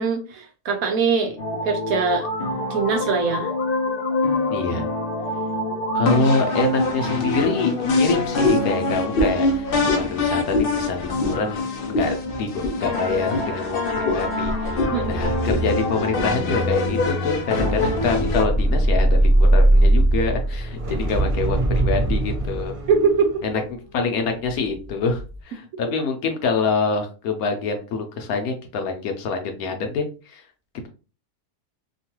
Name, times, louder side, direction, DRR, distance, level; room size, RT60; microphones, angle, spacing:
voice 1, 0.0-1.4 1.6-2.3 2.7-3.5 14.9-15.1 22.9-23.3 23.5-23.7, right 5 dB, 70° right, 4 dB, 0.9 m, -22 dB
sound 1, 1.4-18.5, left 2 dB, 85° left, 0.4 m, -25 dB
voice 2, 4.5-4.9 5.9-14.7 15.0-22.8 23.4-23.6 23.9-30.4, left 4 dB, 70° left, 5 dB, 1.0 m, -26 dB
sound 2, 8.4-8.7 9.1-9.5 9.8-10.0 10.5-10.7 11.2-11.4 11.9-12.1 12.6-12.8 13.3-13.5 14.0-14.3 14.8-15.0 15.5-15.6 16.0-16.3 16.8-17.0 17.6-17.7, left 2 dB, 50° left, 0.7 m, -24 dB
sound 3, 14.4-24.7 25.1-25.4, right 1 dB, 45° right, 0.4 m, -21 dB
3.0 x 2.2 x 2.9 m, 0.34 s
omnidirectional pair, 1.7 m